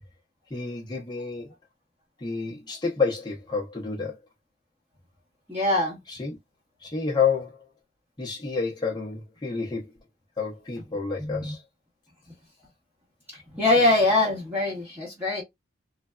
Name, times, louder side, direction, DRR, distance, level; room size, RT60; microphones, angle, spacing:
voice 1, 0.5-1.5 2.2-4.1 6.1-6.4 6.8-7.6 8.2-9.9 10.4-11.6, left 5 dB, 20° left, 0.7 m, -29 dB
voice 2, 5.5-6.0 11.2-11.5 13.5-15.4, left 2 dB, 10° right, 0.9 m, -23 dB
3.2 x 2.2 x 2.3 m
head